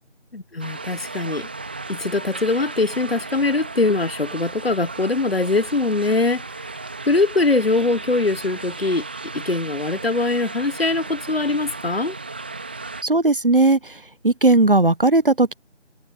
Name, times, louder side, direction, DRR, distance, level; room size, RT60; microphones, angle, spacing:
voice 1, 0.3-1.5 1.9-6.8 7.0-9.0 9.3-12.2, left 3 dB, 55° left, 1.2 m, -22 dB
sound 1, 0.6-13.0, right 3 dB, 10° right, 2.0 m, -35 dB
voice 2, 13.0-13.9 14.2-15.5, right 2 dB, 50° right, 1.1 m, -17 dB
figure-of-eight pair, 170°, 36 cm